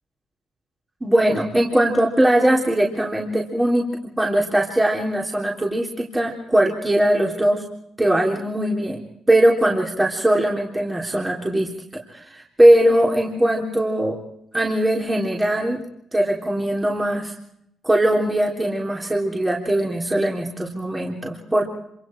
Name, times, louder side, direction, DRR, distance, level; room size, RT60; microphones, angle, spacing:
voice 1, 1.0-7.6 8.0-11.7 12.1-14.2 14.5-15.8 16.1-17.3 17.8-21.7, right 1 dB, 15° right, -2 dB, 3.7 m, -20 dB
27.0 x 26.0 x 4.6 m, 0.75 s
cardioid pair, 90°, 0 cm